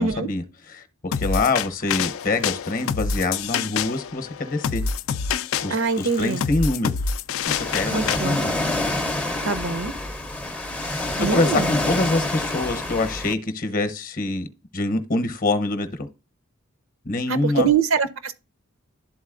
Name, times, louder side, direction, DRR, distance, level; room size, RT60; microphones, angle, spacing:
voice 1, 0.0-4.8 5.6-7.0 7.5-8.5 11.2-14.5 14.7-16.1 17.0-17.7, left 2 dB, 40° left, 0.7 m, -25 dB
sound 1, 1.1-8.2, left 6 dB, 65° left, 0.3 m, -27 dB
voice 2, 5.7-6.4 7.9-8.4 9.4-9.9 11.2-11.7 17.3-18.3, right 5 dB, 60° right, 0.6 m, -23 dB
Ocean, 7.5-13.3, left 2 dB, 5° left, 0.5 m, -27 dB
12.0 x 4.0 x 2.4 m
head